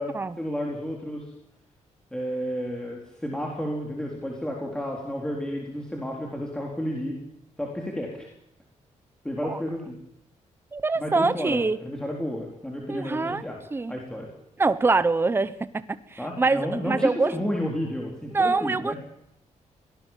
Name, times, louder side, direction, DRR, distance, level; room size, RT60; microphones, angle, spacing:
voice 1, 0.0-1.3 2.1-7.2 7.6-8.3 9.2-10.0 11.0-13.6 13.9-14.3 16.2-19.0, equal, 5° left, -1 dB, 4.0 m, -31 dB
voice 2, 10.7-11.8 12.9-13.4 13.7-13.9 14.6-15.8 16.1-17.3 18.3-19.0, right 3 dB, 20° right, 13 dB, 1.0 m, -24 dB
24.0 x 18.5 x 7.5 m, 0.81 s
wide cardioid pair, 150°, 13 cm